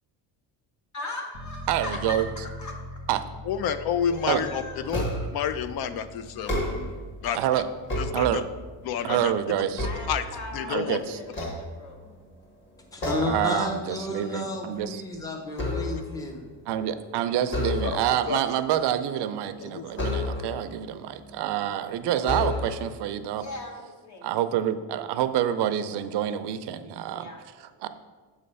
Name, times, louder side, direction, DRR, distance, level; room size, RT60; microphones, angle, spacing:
voice 1, 0.9-2.7 4.1-5.0 9.8-12.0 23.4-24.3 27.0-27.4, left 2 dB, 40° left, 1 dB, 1.0 m, -39 dB
sound 1, 1.3-13.8 14.2-14.3, left 1 dB, 85° left, 1.3 m, -44 dB
voice 2, 1.7-2.3 3.1-3.2 4.3-4.4 7.3-7.7 8.1-8.4 9.0-9.9 10.7-11.2 13.3-15.0 16.7-23.4 24.2-27.3 27.6-27.9, right 11 dB, 65° right, 11 dB, 0.5 m, -27 dB
voice 3, 3.5-6.6 7.2-7.6 8.0-8.4 8.8-9.3 10.1-10.2 10.5-11.0 18.3-18.4 19.7-20.1, left 8 dB, 55° left, 12 dB, 0.5 m, -29 dB
sound 2, 4.9-5.5 6.3-7.1 7.6-8.7 9.2-10.7 11.3-12.2 13.0-13.5 13.9-14.1 14.5-16.2 17.4-18.2 19.9-20.7 21.5-21.6 22.2-23.0, left 1 dB, 25° left, 1.5 m, -31 dB
voice 4, 12.9-16.5, left 2 dB, 10° left, 2 dB, 0.6 m, -32 dB
7.4 x 3.2 x 5.4 m, 1.4 s
cardioid pair, 145°, 44 cm